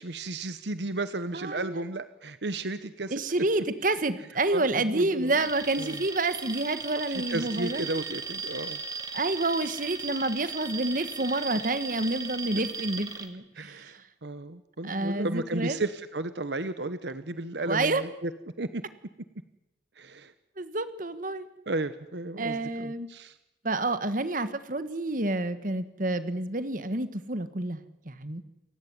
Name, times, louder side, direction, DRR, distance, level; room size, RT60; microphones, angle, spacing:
voice 1, 0.0-3.2 4.5-5.3 5.8-6.0 7.1-8.8 13.6-18.3 18.6-18.8 20.0-20.3 21.7-23.3, right 2 dB, 75° right, 12 dB, 1.1 m, -34 dB
voice 2, 1.3-1.8 3.1-7.9 9.1-14.0 14.8-15.8 17.6-18.0 20.6-21.5 22.4-23.1 23.6-27.8 28.0-28.4, right 2 dB, 50° right, 12 dB, 1.6 m, -29 dB
Alarm, 5.3-13.3, right 5 dB, 20° right, 2.3 m, -37 dB
28.5 x 16.0 x 9.7 m, 0.91 s
head